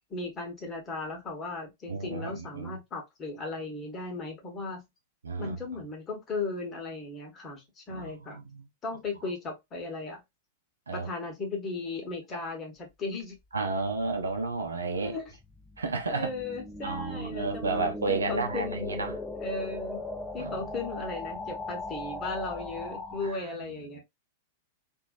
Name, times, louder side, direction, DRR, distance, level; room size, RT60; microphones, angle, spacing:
voice 1, 0.1-4.8 5.4-8.4 8.8-10.2 10.9-13.4 15.0-15.2 16.1-19.0 19.4-20.0 20.3-24.0, left 3 dB, 25° left, 1.3 m, -36 dB
voice 2, 1.9-2.8 5.2-5.6 7.9-8.7 10.9-11.1 13.5-15.2 15.8-16.3 16.8-19.2 20.4-20.7 23.2-24.0, right 3 dB, 75° right, 0.6 m, -32 dB
sound 1, 14.1-23.3, left 2 dB, 10° left, 0.7 m, -39 dB
3.0 x 2.6 x 2.4 m
figure-of-eight pair, 95°, 0 cm